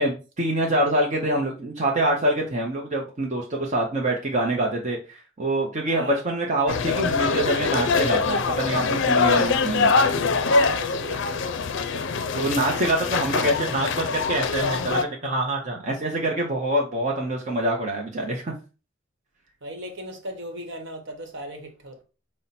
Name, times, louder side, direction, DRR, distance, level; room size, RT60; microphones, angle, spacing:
voice 1, 0.0-9.9 12.3-18.5, right 1 dB, 40° right, 0.7 m, -25 dB
voice 2, 5.9-6.2 9.3-9.7 10.5-11.8 19.6-22.0, right 1 dB, 65° right, 1.1 m, -37 dB
sound 1, 6.7-15.0, left 4 dB, 65° left, 0.4 m, -23 dB
5.5 x 2.1 x 4.0 m
head